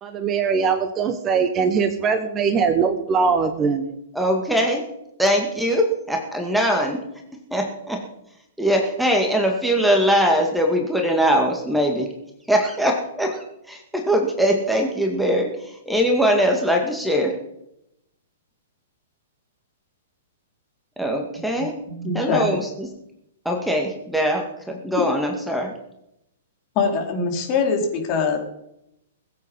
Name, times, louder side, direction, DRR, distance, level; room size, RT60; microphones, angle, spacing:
voice 1, 0.0-3.9, right 5 dB, 25° right, 8 dB, 1.3 m, -21 dB
voice 2, 4.1-4.8 5.2-7.0 7.5-8.0 8.6-12.1 12.5-17.4 21.0-21.7 22.1-22.9 23.5-25.7, equal, ahead, 2 dB, 2.1 m, -21 dB
voice 3, 21.9-22.6 26.8-28.4, left 4 dB, 35° left, 1 dB, 4.1 m, -23 dB
21.0 x 8.6 x 5.5 m, 0.82 s
figure-of-eight pair, 110°, 0 cm